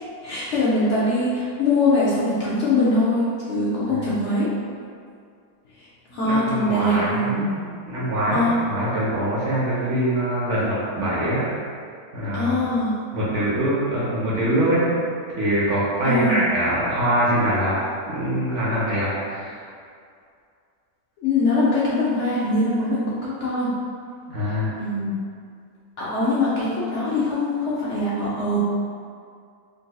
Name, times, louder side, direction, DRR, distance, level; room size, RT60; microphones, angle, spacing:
voice 1, 0.2-4.5 5.8-5.9 6.1-7.6 8.3-8.5 12.3-13.0 16.0-16.4 21.2-23.7 24.8-25.2 26.0-28.6, left 2 dB, 65° left, -9 dB, 0.7 m, -22 dB
voice 2, 6.1-11.5 12.1-12.5 13.1-14.9 15.4-17.8 18.1-19.6 24.3-24.7, right 1 dB, 65° right, -7 dB, 0.8 m, -23 dB
3.9 x 2.6 x 2.2 m, 2.3 s
omnidirectional pair, 1.7 m